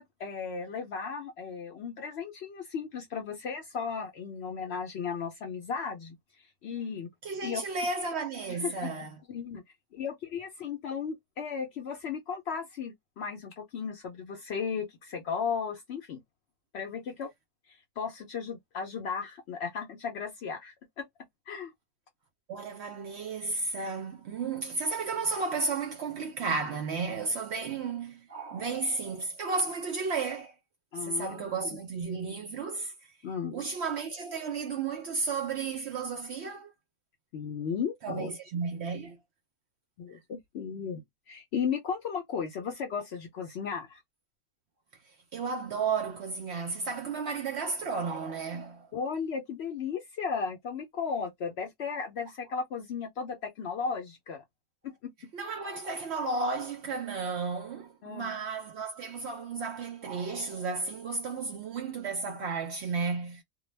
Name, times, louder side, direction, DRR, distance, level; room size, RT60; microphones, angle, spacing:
voice 1, 0.0-6.2 6.6-7.1 7.4-7.6 8.5-8.9 9.3-9.6 9.9-16.2 16.7-17.3 18.0-21.1 21.5-21.7 30.9-31.8 33.2-33.6 37.3-38.3 40.0-41.0 41.3-44.0 48.9-54.4 54.8-55.1 58.0-58.3, left 6 dB, 65° left, 0.6 m, -35 dB
voice 2, 7.2-9.1 22.5-30.5 31.0-32.9 33.5-36.7 38.0-39.2 45.3-48.9 55.3-63.4, right 4 dB, 65° right, 0.6 m, -33 dB
2.2 x 2.2 x 3.1 m
omnidirectional pair, 1.5 m